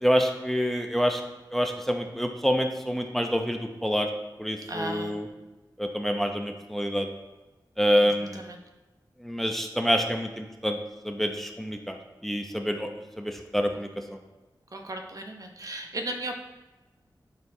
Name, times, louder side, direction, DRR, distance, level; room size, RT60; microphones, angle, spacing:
voice 1, 0.0-1.2 1.5-4.1 4.4-5.3 5.8-7.1 7.8-8.4 9.2-10.8 11.0-12.9 13.2-13.9, equal, 5° left, 4 dB, 0.6 m, -27 dB
voice 2, 4.7-5.1 7.9-8.6 13.7-13.8 14.7-16.4, right 1 dB, 50° right, 3 dB, 0.9 m, -36 dB
11.0 x 4.5 x 2.7 m, 1.1 s
wide cardioid pair, 60°, 8 cm